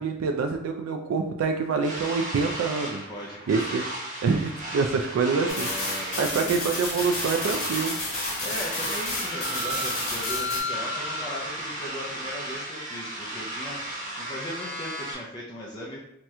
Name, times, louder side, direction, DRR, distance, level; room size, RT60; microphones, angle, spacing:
voice 1, 0.0-3.1 3.5-3.8 4.2-5.7 6.2-8.0, right 4 dB, 85° right, 4 dB, 0.3 m, -26 dB
sound 1, 1.8-15.1, equal, 40° right, 0.8 m, -34 dB
voice 2, 3.1-3.9 5.4-6.6 8.4-16.0, equal, 20° left, -6 dB, 0.4 m, -38 dB
sound 2, 5.5-10.6, left 2 dB, 75° left, 1.2 m, -32 dB
2.9 x 2.1 x 3.5 m, 0.77 s
head